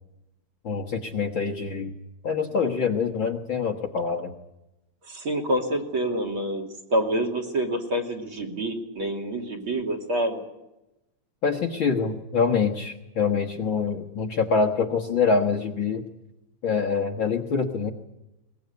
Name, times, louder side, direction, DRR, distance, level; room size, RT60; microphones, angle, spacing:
voice 1, 0.6-1.9 2.2-4.3 11.4-16.0 16.6-17.9, left 5 dB, 50° left, 0 dB, 1.9 m, -25 dB
voice 2, 5.1-10.4, right 1 dB, 45° right, 6 dB, 3.5 m, -27 dB
22.5 x 20.5 x 9.5 m, 0.95 s
omnidirectional pair, 3.4 m